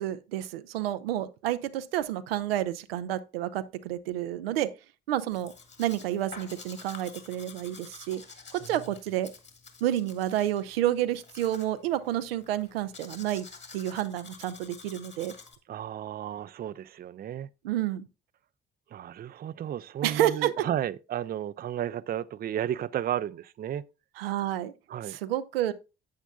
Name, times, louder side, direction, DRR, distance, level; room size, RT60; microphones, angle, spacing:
voice 1, 0.0-4.7 5.1-5.5 5.8-8.2 8.5-9.3 9.8-13.5 13.7-15.3 17.6-18.1 20.0-20.7 24.2-24.7 25.1-25.7, right 12 dB, 85° right, 0.5 m, -29 dB
Domestic sounds home sounds, 5.3-15.6, left 4 dB, 40° left, 2.1 m, -49 dB
voice 2, 15.7-17.5 18.9-23.9 24.9-25.2, right 10 dB, 30° right, 0.4 m, -33 dB
10.0 x 8.0 x 2.3 m
hypercardioid pair, 50°, 29 cm